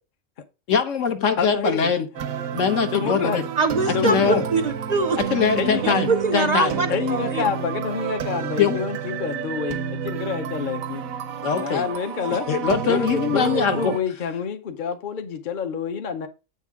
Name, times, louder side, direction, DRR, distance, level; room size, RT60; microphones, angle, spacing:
voice 1, 0.7-2.1 2.5-3.4 3.9-4.4 5.2-6.8 8.6-8.8 11.4-11.9 12.5-13.9, left 7 dB, 70° left, 1.3 m, -22 dB
voice 2, 1.4-1.9 2.9-3.5 3.9-4.5 5.6-5.8 6.9-11.0 11.5-12.5 12.8-16.3, left 6 dB, 50° left, 0.7 m, -28 dB
sound 1, 2.1-14.0, right 8 dB, 90° right, 1.1 m, -30 dB
voice 3, 3.6-5.2 5.8-7.5, right 3 dB, 50° right, 0.5 m, -23 dB
8.3 x 5.7 x 3.5 m
omnidirectional pair, 1.4 m